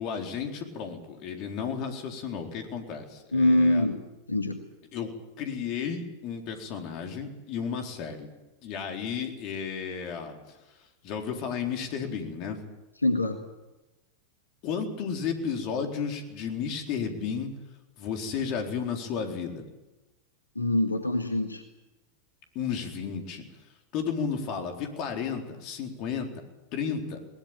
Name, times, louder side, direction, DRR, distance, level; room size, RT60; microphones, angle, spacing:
voice 1, 0.0-3.8 4.9-8.3 8.6-10.4 11.0-12.6 14.6-17.5 18.0-19.6 22.5-23.4 23.9-26.3 26.7-27.2, left 6 dB, 40° left, 3 dB, 4.2 m, -33 dB
voice 2, 3.3-4.6 13.0-13.4 20.6-21.6, left 1 dB, 85° left, 6 dB, 1.8 m, -24 dB
21.5 x 19.5 x 9.1 m, 1.0 s
figure-of-eight pair, 90°, 0 cm